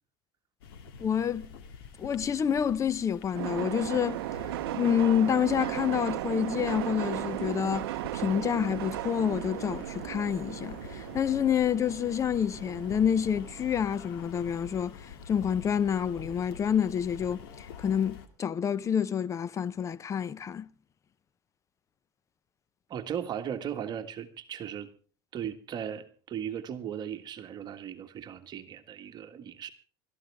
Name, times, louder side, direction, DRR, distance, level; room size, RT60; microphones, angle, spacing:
sound 1, 0.6-18.3, left 6 dB, 85° left, 2.3 m, -47 dB
voice 1, 1.0-1.5 2.0-4.2 4.7-7.9 8.1-20.7, left 8 dB, 25° left, 0.7 m, -28 dB
sound 2, 3.3-14.0, right 16 dB, 90° right, 0.6 m, -36 dB
voice 2, 22.9-24.9 25.3-29.7, right 9 dB, 35° right, 1.6 m, -37 dB
21.0 x 13.5 x 3.5 m
supercardioid pair, 125°, 12 cm